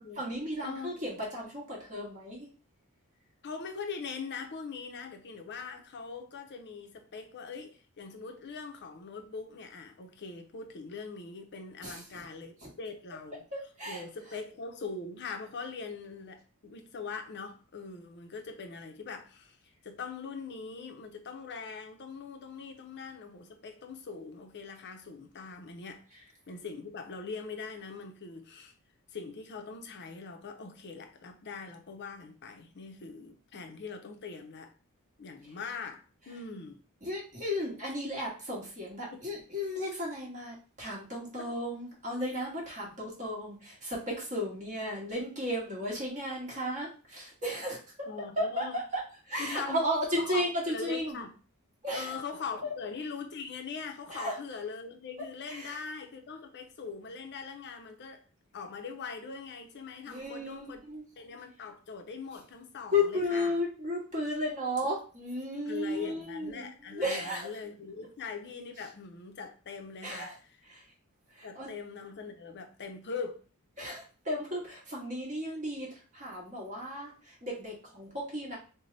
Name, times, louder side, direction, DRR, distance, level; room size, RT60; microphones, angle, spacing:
voice 1, 0.2-2.5 11.8-12.2 13.5-14.0 37.0-47.8 48.4-49.0 49.3-51.2 51.8-52.2 52.6-52.7 54.1-54.4 55.5-55.8 60.1-61.0 62.9-67.5 70.0-70.3 70.7-70.8 71.4-71.7 73.8-75.9 76.1-78.6, left 1 dB, 35° right, 1.5 m, -34 dB
voice 2, 3.4-13.4 13.9-19.6 19.8-26.0 26.5-28.7 29.1-34.7 35.2-36.8 39.1-39.4 41.4-41.5 48.1-48.8 49.4-49.8 50.1-51.3 51.9-58.2 58.5-60.8 61.2-63.6 65.7-70.6 71.4-73.4, left 5 dB, 50° left, 0.6 m, -42 dB
3.3 x 2.2 x 3.9 m
head